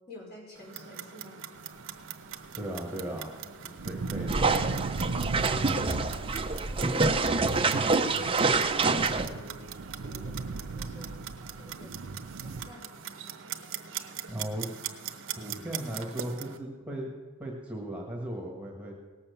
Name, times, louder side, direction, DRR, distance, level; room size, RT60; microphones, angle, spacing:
voice 1, 0.1-1.4 6.7-7.7 8.1-9.6 9.9-11.2 11.6-11.9 12.4-12.9, equal, 45° left, -3 dB, 5.2 m, -47 dB
Clock, 0.6-16.6, right 9 dB, 60° right, 0.9 m, -42 dB
sound 1, 2.2-12.7, right 3 dB, 85° right, 0.6 m, -38 dB
voice 2, 2.5-3.4 3.6-4.6 14.3-14.7 15.4-18.9, right 1 dB, 5° right, -1 dB, 1.6 m, -37 dB
sound 2, 4.3-9.3, right 3 dB, 25° right, 0.7 m, -26 dB
18.0 x 7.2 x 6.9 m, 1.4 s
head